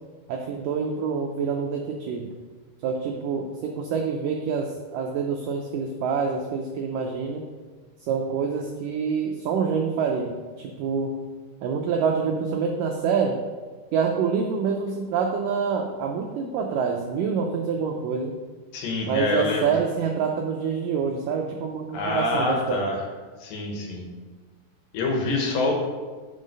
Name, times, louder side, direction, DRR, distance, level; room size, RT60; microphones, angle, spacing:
voice 1, 0.3-2.3 2.8-7.5 8.0-11.2 11.6-13.4 13.9-18.3 19.0-22.8 25.3-25.6, right 6 dB, 85° right, 2 dB, 1.9 m, -26 dB
voice 2, 18.7-19.8 21.9-23.0 23.4-24.0 24.9-25.7, left 2 dB, 70° left, 1 dB, 2.6 m, -26 dB
5.7 x 5.5 x 6.4 m, 1.4 s
omnidirectional pair, 4.5 m